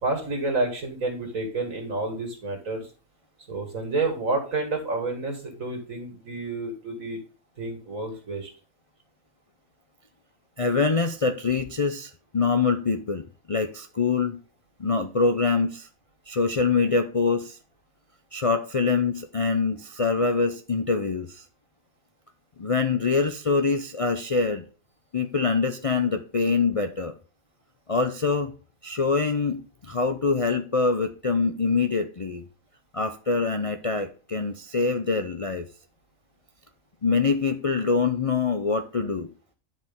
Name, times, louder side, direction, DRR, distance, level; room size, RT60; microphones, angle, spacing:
voice 1, 0.0-2.9 3.5-7.2 7.6-8.5, right 2 dB, 75° right, 3 dB, 2.4 m, -29 dB
voice 2, 10.6-14.4 14.8-15.9 16.3-17.6 18.3-21.4 22.6-24.6 25.1-27.2 27.9-28.5 28.8-32.4 32.9-35.7 37.0-39.3, left 4 dB, 45° left, 6 dB, 0.4 m, -24 dB
11.0 x 5.1 x 3.6 m, 0.38 s
omnidirectional pair, 1.4 m